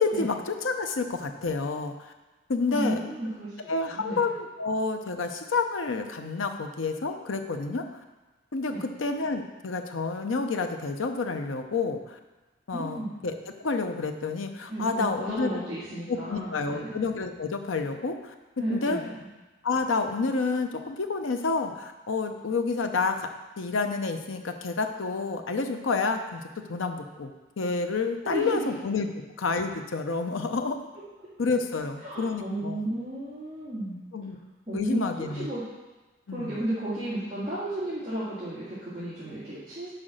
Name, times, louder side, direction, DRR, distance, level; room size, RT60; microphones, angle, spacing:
voice 1, 0.0-1.9 2.5-3.0 3.7-7.8 8.5-12.2 12.7-13.3 13.6-15.6 16.1-18.3 18.7-19.0 19.6-23.3 23.6-26.4 26.7-29.1 29.4-30.8 31.4-32.9 34.1-34.4 34.7-35.5 36.3-36.5, left 4 dB, 90° left, 6 dB, 0.7 m, -29 dB
voice 2, 2.7-4.2 8.7-8.8 12.7-13.1 14.7-17.0 18.6-19.3 28.2-28.6 31.2-31.3 32.0-34.0 34.7-35.6 36.3-39.9, right 1 dB, 25° right, -12 dB, 1.9 m, -33 dB
5.8 x 5.0 x 6.4 m, 1.2 s
head